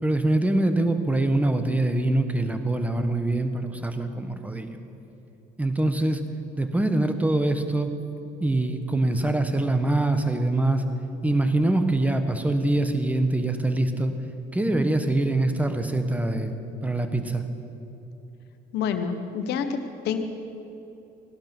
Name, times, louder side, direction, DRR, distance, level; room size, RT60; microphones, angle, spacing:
voice 1, 0.0-4.8 5.6-6.2 6.6-7.9 8.4-10.8 11.2-14.1 14.5-16.5 16.8-17.4, right 2 dB, 10° right, 8 dB, 1.2 m, -24 dB
voice 2, 18.7-20.2, left 7 dB, 80° left, 7 dB, 1.3 m, -28 dB
17.5 x 12.0 x 6.1 m, 3.0 s
cardioid pair, 110°, 17 cm